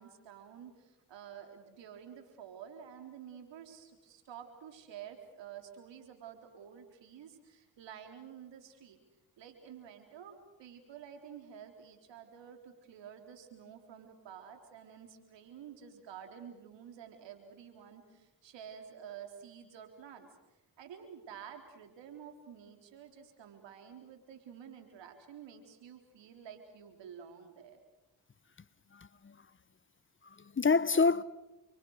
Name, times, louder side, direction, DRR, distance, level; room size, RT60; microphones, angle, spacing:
voice 1, 0.0-9.0 9.4-20.3 20.8-27.8, right 8 dB, 85° right, 4.0 m, -50 dB
voice 2, 28.9-29.4 30.2-31.2, left 4 dB, 30° left, 0.8 m, -28 dB
29.5 x 24.0 x 6.6 m
cardioid pair, 60°, 43 cm